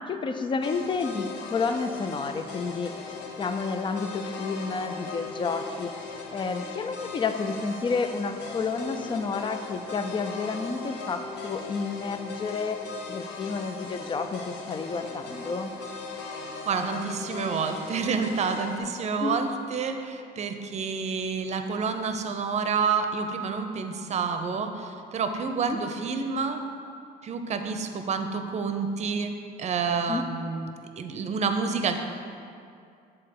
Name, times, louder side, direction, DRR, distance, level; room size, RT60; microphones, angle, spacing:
voice 1, 0.1-2.9 3.4-5.9 6.3-12.8 13.1-15.7 19.2-19.4 25.6-25.8 30.1-30.2, left 4 dB, 30° left, 8 dB, 0.5 m, -30 dB
sound 1, 0.6-18.8, left 4 dB, 90° left, 0.9 m, -39 dB
voice 2, 16.7-26.6 27.2-29.3 29.6-32.0, right 5 dB, 40° right, 7 dB, 0.7 m, -29 dB
7.7 x 4.3 x 6.7 m, 2.4 s
cardioid pair, 110°, 17 cm